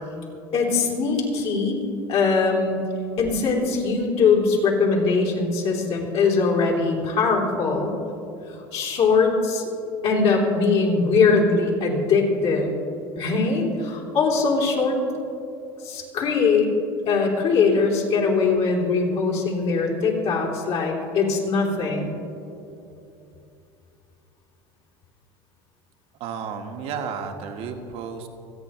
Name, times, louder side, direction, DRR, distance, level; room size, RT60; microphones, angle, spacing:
voice 1, 0.5-1.8 2.1-2.7 3.2-7.9 8.5-9.6 10.0-12.7 13.2-15.0 15.8-16.7 17.1-22.2, left 4 dB, 55° left, -2 dB, 3.3 m, -21 dB
voice 2, 26.2-28.3, right 6 dB, 60° right, 4 dB, 1.4 m, -32 dB
27.0 x 9.1 x 3.1 m, 2.7 s
supercardioid pair, 100°, 12 cm